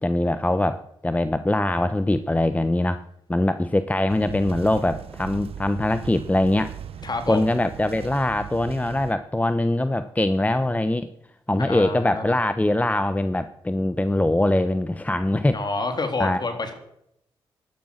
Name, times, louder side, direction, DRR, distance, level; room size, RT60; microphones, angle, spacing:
voice 1, 0.0-3.0 3.3-6.7 7.3-11.1 11.5-15.6 16.2-16.4, left 1 dB, 15° left, 12 dB, 0.9 m, -22 dB
sound 1, 4.1-9.1, right 9 dB, 70° right, 0.8 m, -38 dB
voice 2, 7.0-7.5 11.6-12.2 15.5-16.7, left 3 dB, 45° left, 6 dB, 3.6 m, -28 dB
14.0 x 12.0 x 6.5 m, 0.76 s
supercardioid pair, 55°, 10 cm